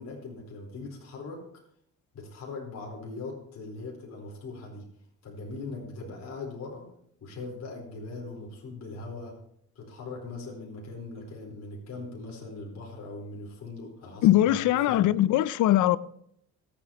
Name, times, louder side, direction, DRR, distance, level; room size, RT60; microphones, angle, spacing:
voice 1, 0.0-1.6 2.1-4.9 5.2-6.9 7.2-9.4 9.7-15.1, left 3 dB, 60° left, 4.4 m, -40 dB
voice 2, 14.2-16.0, left 13 dB, 80° left, 0.5 m, -21 dB
25.5 x 8.5 x 3.0 m
cardioid pair, 90°, 30 cm